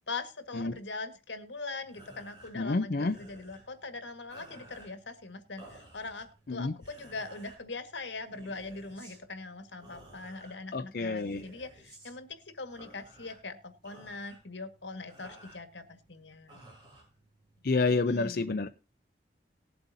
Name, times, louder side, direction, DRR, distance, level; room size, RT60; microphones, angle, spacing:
voice 1, 0.1-13.6 13.8-16.6 18.0-18.5, left 3 dB, 85° left, 9 dB, 1.8 m, -42 dB
sound 1, 1.8-17.7, right 1 dB, 25° right, 6.3 m, -55 dB
voice 2, 2.6-3.2 6.5-6.7 10.7-11.4 17.6-18.7, left 3 dB, 55° left, 8 dB, 0.5 m, -29 dB
19.5 x 7.9 x 2.7 m, 0.32 s
head